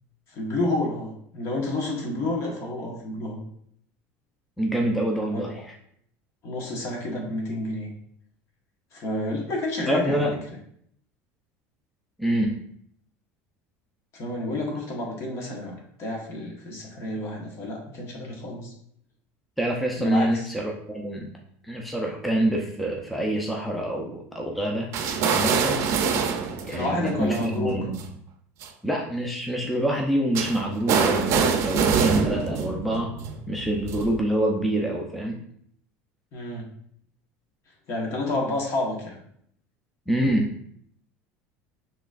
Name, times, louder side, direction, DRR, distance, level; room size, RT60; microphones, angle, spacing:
voice 1, 0.3-3.4 5.3-5.6 6.4-7.9 8.9-10.3 14.1-18.7 20.0-20.5 26.7-27.8 36.3-36.7 37.9-39.2, left 2 dB, 50° left, 0 dB, 1.3 m, -30 dB
voice 2, 4.6-5.6 9.9-10.4 12.2-12.6 19.6-21.3 21.6-24.9 25.2-25.8 26.6-28.0 28.8-33.1 33.5-35.4 40.1-40.5, right 1 dB, ahead, -1 dB, 0.5 m, -26 dB
sound 1, 24.9-28.0 28.6-28.7 30.3-34.2, right 6 dB, 50° right, 0.5 m, -25 dB
6.1 x 3.0 x 2.4 m, 0.67 s
supercardioid pair, 125°, 6 cm